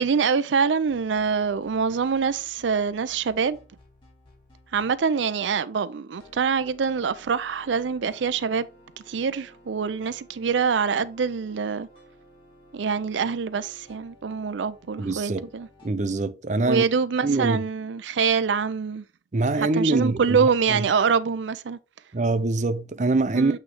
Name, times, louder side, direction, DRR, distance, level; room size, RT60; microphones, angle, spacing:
voice 1, 0.0-3.6 4.7-8.7 9.1-11.9 12.7-15.7 16.7-19.0 19.6-21.8 23.3-23.6, right 6 dB, 90° right, 0.5 m, -25 dB
sound 1, 0.8-5.1 6.2-15.9, equal, 30° left, 3.1 m, -55 dB
voice 2, 15.0-15.5 15.8-16.8 17.2-17.6 19.3-20.9 22.1-23.6, right 2 dB, 40° right, 0.6 m, -24 dB
8.3 x 3.2 x 4.8 m
head